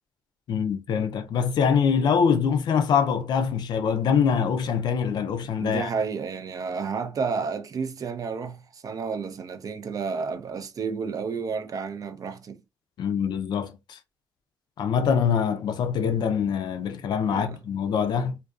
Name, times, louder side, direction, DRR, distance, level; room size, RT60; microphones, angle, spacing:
voice 1, 0.5-5.9 13.0-14.0 14.8-18.4, left 7 dB, 65° left, 0.4 m, -24 dB
voice 2, 5.6-12.6 17.2-17.6, right 5 dB, 50° right, 0.4 m, -31 dB
2.4 x 2.2 x 2.4 m
supercardioid pair, 55°, 8 cm